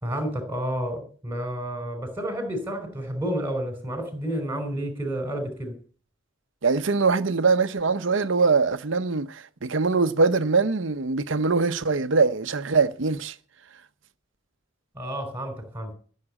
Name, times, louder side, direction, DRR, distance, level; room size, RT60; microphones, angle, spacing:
voice 1, 0.0-5.8 14.9-15.9, right 1 dB, 10° right, 4.8 m, -30 dB
voice 2, 6.6-13.3, right 4 dB, 65° right, 0.8 m, -22 dB
14.5 x 7.4 x 8.8 m
head